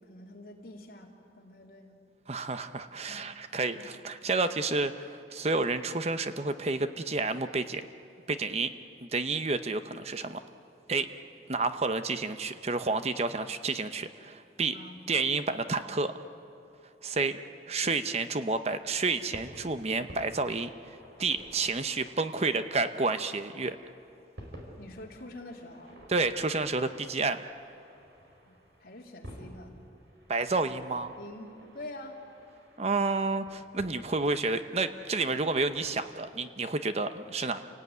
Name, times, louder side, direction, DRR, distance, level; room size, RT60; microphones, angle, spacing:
voice 1, 0.1-2.0 3.1-3.2 3.8-3.9 14.7-15.0 24.8-26.0 28.4-28.5 28.8-29.7 31.1-31.5 31.7-32.1, left 1 dB, 55° left, -1 dB, 3.3 m, -46 dB
voice 2, 2.3-7.8 8.3-8.7 9.0-10.4 10.9-11.1 11.5-14.8 15.1-16.1 17.0-17.4 17.7-20.7 21.2-23.8 26.1-27.4 30.3-31.2 32.8-37.6, right 3 dB, 35° right, 10 dB, 0.8 m, -30 dB
sound 1, 18.6-35.9, equal, 80° right, 4.9 m, -52 dB
29.5 x 18.0 x 9.4 m, 2.7 s
head